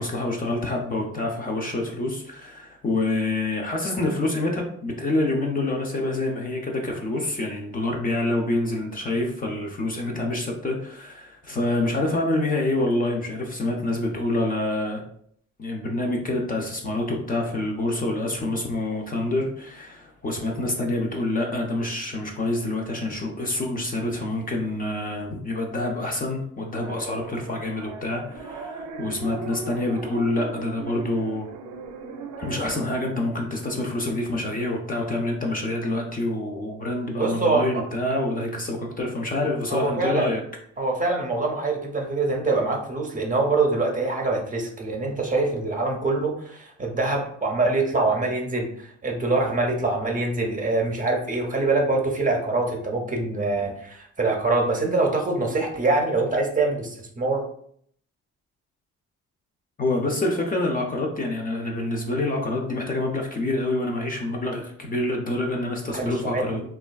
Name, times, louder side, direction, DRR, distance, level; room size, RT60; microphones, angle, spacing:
voice 1, 0.0-15.0 15.6-31.5 32.4-40.4 59.8-66.6, left 2 dB, 30° left, 1 dB, 0.5 m, -27 dB
sound 1, 26.8-32.9, right 3 dB, 75° right, 0.5 m, -38 dB
voice 2, 37.1-37.8 39.7-40.3 40.8-57.4 65.9-66.6, right 3 dB, 25° right, 2 dB, 0.6 m, -24 dB
3.1 x 2.3 x 2.3 m, 0.65 s
cardioid pair, 90°, 30 cm